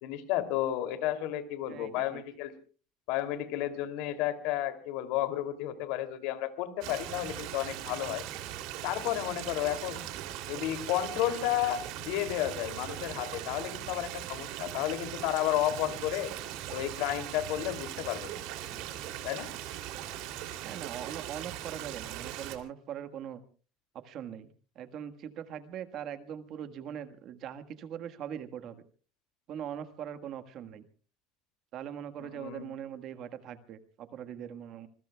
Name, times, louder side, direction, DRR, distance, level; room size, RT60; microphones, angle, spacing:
voice 1, 0.0-2.5 3.1-8.3 8.8-10.1 10.5-16.3 16.7-18.4 19.2-19.5 32.2-32.7, left 13 dB, 65° left, 10 dB, 2.8 m, -32 dB
voice 2, 1.7-2.2 20.6-23.4 24.0-24.5 24.7-28.8 29.5-30.8 31.7-34.9, right 9 dB, 40° right, 9 dB, 1.6 m, -41 dB
Stream, 6.8-22.6, right 12 dB, 60° right, 3.0 m, -40 dB
26.5 x 22.0 x 2.3 m, 0.38 s
cardioid pair, 165°, 0 cm